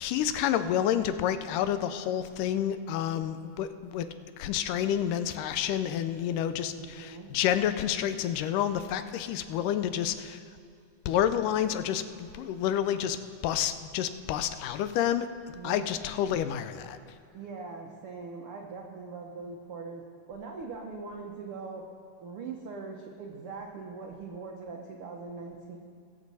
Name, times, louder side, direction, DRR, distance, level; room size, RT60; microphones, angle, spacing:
voice 1, 0.0-4.1 4.4-10.4 11.1-13.2 13.4-15.3 15.6-17.0, left 10 dB, 80° left, 10 dB, 2.2 m, -29 dB
voice 2, 6.5-7.3 15.5-15.9 17.3-20.0 20.3-21.8 22.2-25.8, right 4 dB, 90° right, 1 dB, 1.2 m, -41 dB
21.5 x 7.4 x 4.1 m, 2.5 s
omnidirectional pair, 3.8 m